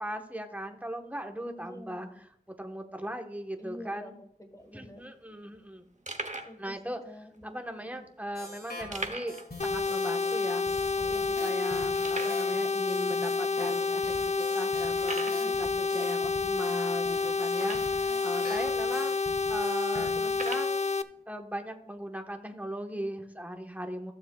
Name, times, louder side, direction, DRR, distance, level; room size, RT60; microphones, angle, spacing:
voice 1, 0.0-2.1 2.6-4.1 4.7-5.8 6.6-7.0 7.4-10.7 11.0-19.2 19.5-20.8 21.3-24.1, right 1 dB, 10° right, 4 dB, 1.2 m, -38 dB
voice 2, 1.6-2.2 3.6-5.1 6.4-7.7 7.9-8.1 15.2-15.6 18.1-18.2 22.9-23.1, equal, 20° left, 6 dB, 1.5 m, -48 dB
sound 1, 4.6-4.7 4.9-5.0 5.5-5.6 6.1-6.6 7.3-7.4 8.9-9.5 9.8-9.9 10.3-10.4 11.0-11.1 12.0-12.5 13.3-13.4 13.9-14.0 15.0-15.5 17.5-18.1 18.9-19.0 20.3-20.7, right 2 dB, 45° right, 0.9 m, -38 dB
sound 2, 8.3-10.3 10.7-20.5, left 2 dB, 65° left, 2.1 m, -44 dB
sound 3, 9.6-21.0, left 4 dB, 45° left, 0.4 m, -29 dB
15.0 x 7.2 x 2.3 m, 0.71 s
wide cardioid pair, 45°, 17 cm